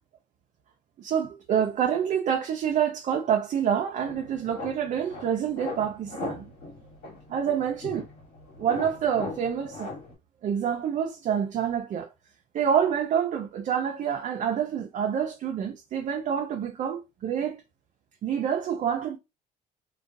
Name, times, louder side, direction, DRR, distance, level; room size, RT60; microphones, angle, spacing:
voice 1, 1.0-6.4 7.3-8.0 8.6-9.9 10.4-12.1 12.5-17.6 18.2-19.2, right 8 dB, 45° right, 0.4 m, -27 dB
sound 1, 4.0-10.1, left 3 dB, 80° left, 1.3 m, -39 dB
2.3 x 2.2 x 2.6 m
cardioid pair, 110°, 17 cm